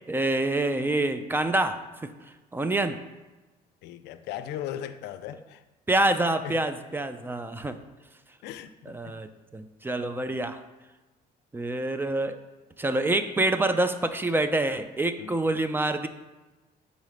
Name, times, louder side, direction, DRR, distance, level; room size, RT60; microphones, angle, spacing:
voice 1, 0.1-2.1 2.5-3.0 5.9-7.8 8.9-10.6 11.5-12.4 12.8-16.1, right 2 dB, 10° right, 0.4 m, -26 dB
voice 2, 3.8-5.6 6.4-6.6 8.4-8.7 9.1-9.2 15.2-15.4, left 11 dB, 85° left, 0.4 m, -37 dB
5.4 x 4.0 x 4.9 m
cardioid pair, 110°, 17 cm